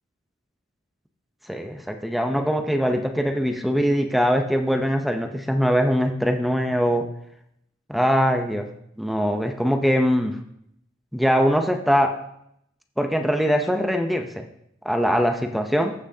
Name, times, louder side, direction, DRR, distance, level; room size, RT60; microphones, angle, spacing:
voice 1, 1.5-7.0 7.9-8.7 9.0-10.4 11.1-12.1 13.0-14.5 14.8-15.9, equal, ahead, 5 dB, 0.6 m, -22 dB
15.0 x 6.0 x 2.7 m, 0.74 s
head